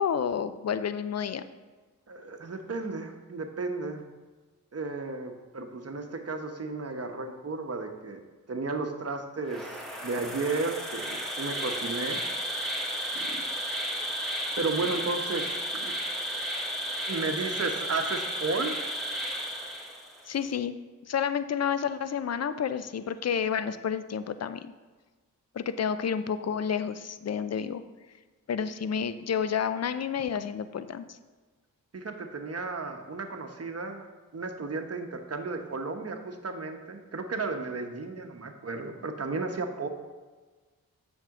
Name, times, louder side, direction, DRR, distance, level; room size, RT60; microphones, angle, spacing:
voice 1, 0.0-1.4 20.3-20.7 21.1-24.7 25.5-27.8 28.5-31.2, left 7 dB, 45° left, 12 dB, 0.6 m, -30 dB
voice 2, 2.1-4.0 4.7-8.2 8.5-12.2 13.2-13.4 14.6-15.5 15.7-15.9 17.1-18.8 31.9-39.9, right 3 dB, 45° right, 5 dB, 1.1 m, -33 dB
Insect, 9.5-20.2, equal, ahead, 2.2 m, -33 dB
7.3 x 6.4 x 3.7 m, 1.3 s
cardioid pair, 45°, 35 cm